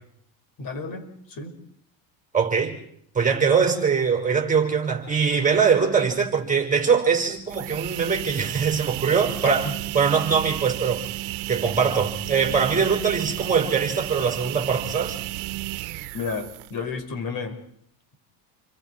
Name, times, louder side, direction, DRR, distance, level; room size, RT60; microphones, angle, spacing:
voice 1, 0.6-1.5 9.6-9.7 16.1-17.6, left 4 dB, 45° left, 6 dB, 5.6 m, -32 dB
voice 2, 2.3-2.8 3.1-9.7 9.9-11.0 11.5-15.2, right 6 dB, 15° right, 4 dB, 5.8 m, -22 dB
sound 1, 7.4-16.9, right 17 dB, 70° right, 1.4 m, -33 dB
29.5 x 23.5 x 4.8 m, 0.69 s
supercardioid pair, 105°, 49 cm